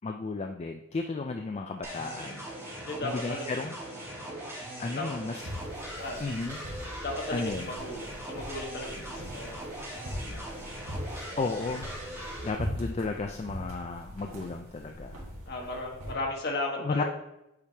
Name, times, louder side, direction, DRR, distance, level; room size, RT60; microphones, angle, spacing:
voice 1, 0.0-2.4 3.0-3.7 4.1-4.3 4.8-5.4 6.2-6.6 7.3-7.7 11.4-11.9 12.4-15.2 15.5-15.7 16.8-17.0, left 3 dB, 30° left, 4 dB, 0.3 m, -33 dB
sound 1, 1.8-12.5, right 1 dB, 15° right, 2.5 m, -40 dB
voice 2, 2.8-3.6 4.9-5.1 6.0-6.3 7.0-10.4 15.5-17.0, left 2 dB, 50° left, 0 dB, 1.4 m, -36 dB
sound 2, 5.4-16.1, equal, 85° right, 1.8 m, -41 dB
8.5 x 4.7 x 2.8 m, 0.89 s
head